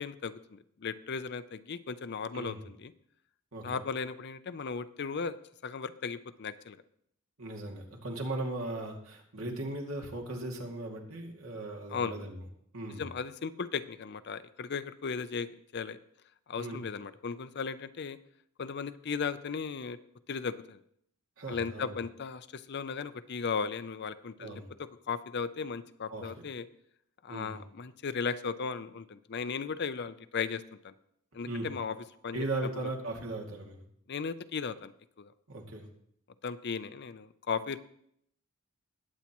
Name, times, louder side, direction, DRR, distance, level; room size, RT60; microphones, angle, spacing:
voice 1, 0.0-2.9 3.6-5.4 5.6-6.8 11.9-12.1 13.0-16.0 16.5-18.2 18.6-20.0 20.3-20.8 21.5-26.7 27.2-30.9 31.3-32.0 32.2-32.9 34.1-34.9 35.2-35.3 36.4-37.8, left 5 dB, 55° left, 13 dB, 0.6 m, -36 dB
voice 2, 7.4-12.3 12.7-13.0 16.6-16.8 21.4-21.9 24.4-24.6 26.1-26.3 27.3-27.6 31.5-31.7 32.3-33.8 35.5-35.9, right 2 dB, 85° right, 0 dB, 2.3 m, -37 dB
20.0 x 8.4 x 3.0 m, 0.71 s
head